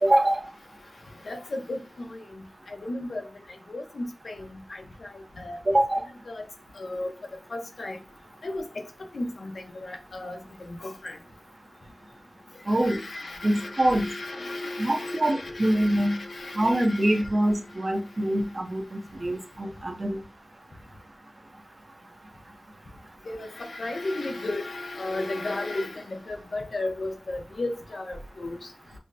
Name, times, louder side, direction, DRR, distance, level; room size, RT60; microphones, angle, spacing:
voice 1, 0.0-0.4 5.7-6.1 12.7-13.0 13.4-14.1 14.8-16.1 16.5-20.2, right 1 dB, 40° right, 0.7 m, -24 dB
voice 2, 1.2-3.2 3.7-5.8 6.3-6.5 6.7-7.1 7.5-8.0 8.4-8.9 9.1-11.2 12.7-17.3 23.3-28.6, left 2 dB, 75° left, 0.7 m, -35 dB
5.5 x 2.1 x 2.6 m
wide cardioid pair, 85°, 0 cm